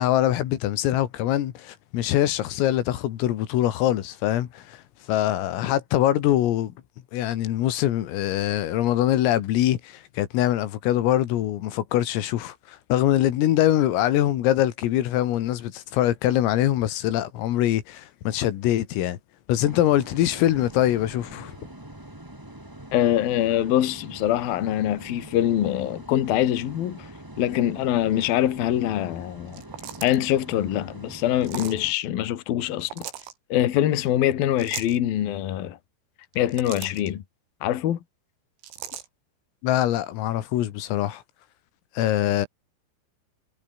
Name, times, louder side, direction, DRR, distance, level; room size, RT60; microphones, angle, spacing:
voice 1, 0.0-4.8 5.1-6.7 7.1-19.2 19.5-21.5 39.6-41.2 42.0-42.5, left 13 dB, 85° left, 4.6 m, -23 dB
sound 1, 19.6-31.9, right 1 dB, 10° right, 1.3 m, -43 dB
voice 2, 22.9-27.1 27.4-29.6 30.0-33.1 33.5-35.8 36.3-37.2 37.6-38.0, left 12 dB, 55° left, 3.1 m, -24 dB
sound 2, 29.5-30.3 31.4-31.8 32.8-33.3 34.6-35.0 36.2-37.1 38.6-39.1, right 10 dB, 75° right, 5.4 m, -38 dB
omnidirectional pair, 5.8 m